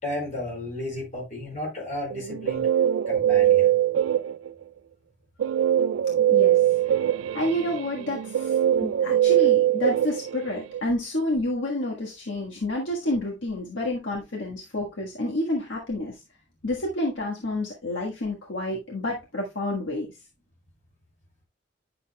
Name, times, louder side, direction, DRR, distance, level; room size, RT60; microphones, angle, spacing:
voice 1, 0.0-2.7 3.1-3.7, left 1 dB, 40° left, 4.8 m, -33 dB
Guitar, 2.1-4.6 5.4-10.8, right 11 dB, 90° right, 0.3 m, -22 dB
voice 2, 6.3-6.6 7.3-16.2 16.6-20.1, left 1 dB, 75° left, 1.6 m, -29 dB
9.9 x 6.7 x 2.3 m
head